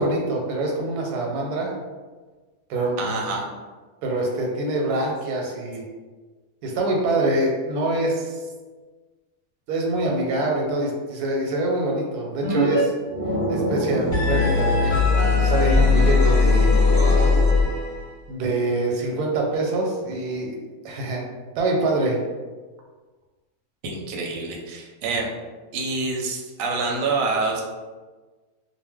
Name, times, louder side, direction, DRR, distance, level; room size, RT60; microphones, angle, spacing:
voice 1, 0.0-1.7 2.7-3.0 4.0-5.8 6.6-8.4 9.7-12.9 13.5-16.7 18.3-20.6 20.8-21.2 21.6-22.2, right 2 dB, 90° right, 0 dB, 1.2 m, -25 dB
voice 2, 3.0-3.4 23.8-25.3 25.7-27.6, right 3 dB, 70° right, 0 dB, 0.9 m, -26 dB
sound 1, 12.4-12.8 13.1-18.0, left 3 dB, 15° left, 0.7 m, -19 dB
2.4 x 2.1 x 3.4 m, 1.3 s
omnidirectional pair, 1.6 m